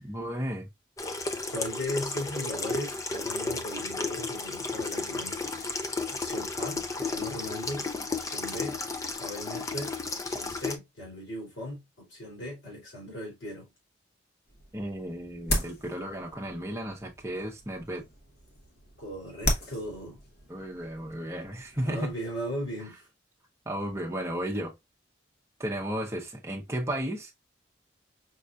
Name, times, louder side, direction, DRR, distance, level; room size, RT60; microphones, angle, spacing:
voice 1, 0.0-0.7 14.7-18.0 20.5-22.1 23.7-24.7 25.6-27.4, right 1 dB, 15° right, 0.8 m, -34 dB
Water tap faucet / Sink (filling or washing), 1.0-10.7, left 3 dB, 15° left, 0.3 m, -33 dB
voice 2, 1.5-5.7 6.1-8.8 9.2-9.9 10.2-13.7 19.0-20.2 21.7-23.0, left 1 dB, 80° left, 2.7 m, -38 dB
sound 1, 14.5-22.2, left 1 dB, 50° left, 0.9 m, -36 dB
5.4 x 2.3 x 2.3 m
head